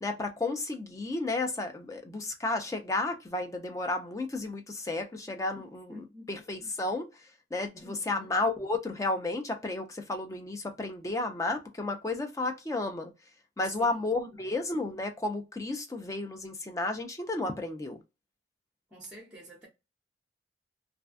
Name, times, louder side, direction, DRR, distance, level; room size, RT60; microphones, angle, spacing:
voice 1, 0.0-6.0 6.3-13.1 13.6-18.0, left 2 dB, 15° left, 0.3 m, -32 dB
voice 2, 5.5-6.3 7.8-8.4 13.6-14.5 18.9-19.7, equal, 5° right, 0.7 m, -48 dB
2.5 x 2.2 x 2.3 m
head